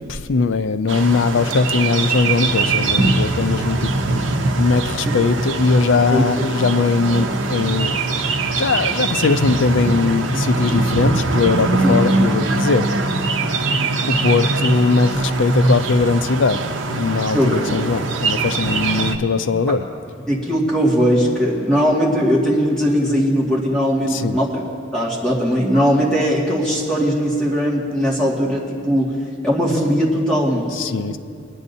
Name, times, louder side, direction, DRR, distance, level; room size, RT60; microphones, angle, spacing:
voice 1, 0.1-3.9 4.6-8.0 8.5-12.9 14.1-19.8 24.0-24.4 30.7-31.2, left 4 dB, 80° left, 11 dB, 0.5 m, -20 dB
sound 1, 0.9-19.2, right 3 dB, 75° right, 0.7 m, -22 dB
voice 2, 17.3-17.8 20.3-24.6 24.9-29.1 29.4-30.8, equal, 5° left, -6 dB, 2.0 m, -19 dB
24.0 x 9.9 x 2.7 m, 2.4 s
head